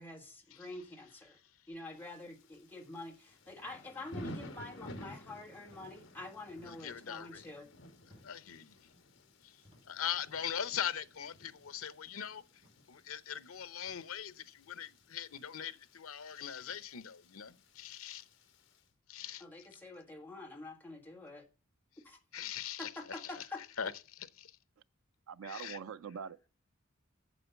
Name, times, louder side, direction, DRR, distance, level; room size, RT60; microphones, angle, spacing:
voice 1, 0.0-1.4 1.7-7.7 19.4-21.4 22.0-22.2 22.8-23.6, left 2 dB, 10° left, 1.5 m, -47 dB
Thunder / Rain, 2.0-18.8, left 1 dB, 65° left, 1.4 m, -53 dB
sound 1, 5.6-5.9 6.1-7.0 7.2-8.5 9.5-10.1 11.0-11.2 11.5-11.6 12.5-12.8 13.9-14.0 15.2-15.5 16.6-16.8, equal, 30° right, 4.0 m, -65 dB
voice 2, 6.6-7.5 8.2-8.9 9.4-9.6 9.9-12.4 12.9-18.2 19.1-19.4 22.3-23.4 23.8-24.6 25.4-25.8, left 9 dB, 90° left, 0.7 m, -41 dB
voice 3, 25.3-26.5, right 7 dB, 90° right, 0.5 m, -44 dB
8.4 x 7.2 x 6.9 m
head